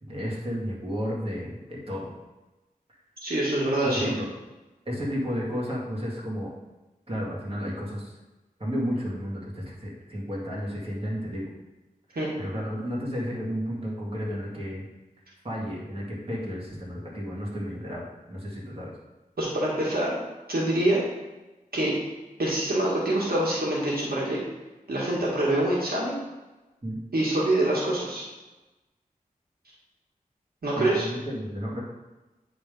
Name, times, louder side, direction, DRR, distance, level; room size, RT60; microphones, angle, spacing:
voice 1, 0.0-2.1 3.8-4.3 4.9-6.5 7.1-8.2 8.6-11.5 12.1-14.9 15.4-18.0 18.3-18.9 26.8-27.0 30.8-31.8, equal, 40° right, -5 dB, 2.2 m, -32 dB
voice 2, 3.2-4.1 12.2-12.3 19.4-20.1 20.5-21.0 21.7-21.9 22.4-24.4 24.9-26.2 27.1-28.2 30.6-31.1, right 1 dB, 85° right, -5 dB, 1.7 m, -25 dB
8.8 x 3.7 x 5.2 m, 1.1 s
wide cardioid pair, 55°, 15 cm